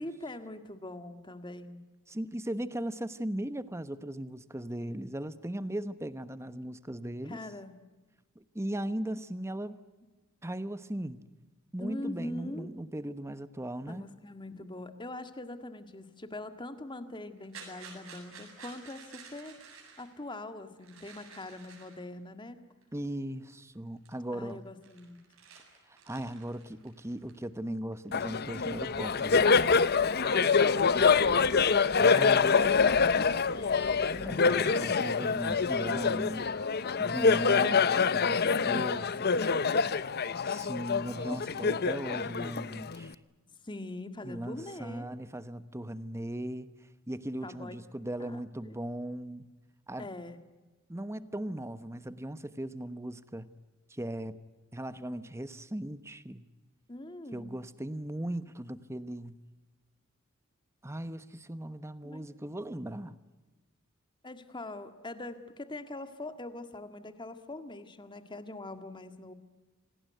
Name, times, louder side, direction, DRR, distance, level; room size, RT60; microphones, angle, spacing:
voice 1, 0.0-1.8 7.2-7.8 11.8-12.7 13.9-19.6 20.0-22.6 24.3-25.2 30.2-31.5 32.1-34.9 37.2-38.1 38.5-39.8 41.3-41.7 42.1-42.2 43.6-45.1 47.4-47.8 48.2-48.8 50.0-50.4 56.9-57.6 62.0-62.2 64.2-69.3, left 2 dB, 25° left, 1.8 m, -43 dB
voice 2, 2.1-7.4 8.3-9.8 10.4-11.2 11.7-14.1 22.9-24.6 25.9-29.5 32.0-32.6 34.2-36.5 37.0-39.1 40.4-43.2 44.2-46.7 47.1-49.5 49.9-50.1 50.9-53.5 53.9-54.4 54.7-56.5 57.3-59.4 60.8-63.2, right 1 dB, 15° right, 1.0 m, -38 dB
sound 1, 17.4-20.1 20.8-22.0 22.8-22.9 23.4-23.7 24.0-24.2 24.5-27.6 27.9-28.6, right 5 dB, 80° right, 7.7 m, -51 dB
Laughter, 28.1-43.1, left 5 dB, 50° left, 0.8 m, -26 dB
27.0 x 19.0 x 9.3 m
head